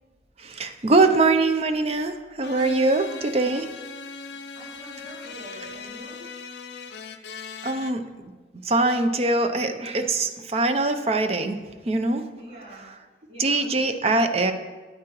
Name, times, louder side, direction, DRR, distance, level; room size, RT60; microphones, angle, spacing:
voice 1, 0.4-3.7 7.6-8.3 8.6-11.6 11.9-12.2 12.7-12.9 13.4-14.5, right 3 dB, 35° right, 8 dB, 0.5 m, -23 dB
sound 1, 2.4-7.9, left 5 dB, 70° left, 0.4 m, -39 dB
voice 2, 2.9-3.6 4.3-6.2 12.3-12.9 13.3-14.4, right 1 dB, 85° right, -6 dB, 2.8 m, -46 dB
8.7 x 8.3 x 3.0 m, 1.3 s
head